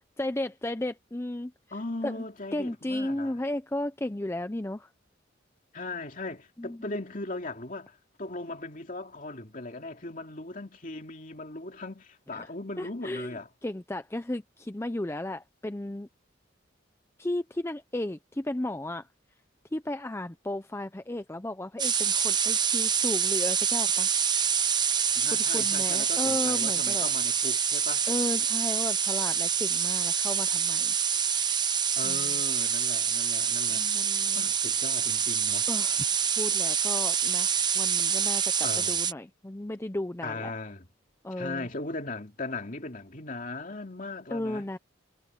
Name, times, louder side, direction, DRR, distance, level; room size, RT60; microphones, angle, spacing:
voice 1, 0.2-1.5 2.0-2.2 2.5-4.9 6.6-6.9 12.4-12.5 12.8-16.1 17.2-19.1 19.7-24.1 25.3-27.1 28.1-30.9 32.0-32.3 33.7-34.5 35.7-36.0 36.4-40.5 41.2-41.7 44.3-44.8, left 1 dB, 15° left, 0.5 m, -34 dB
voice 2, 1.7-3.4 5.7-13.5 25.1-28.1 32.0-33.9 34.3-35.7 38.6-39.0 40.2-40.9 41.4-44.7, left 2 dB, 45° left, 2.7 m, -38 dB
sound 1, 21.8-39.1, right 7 dB, 25° right, 0.8 m, -26 dB
head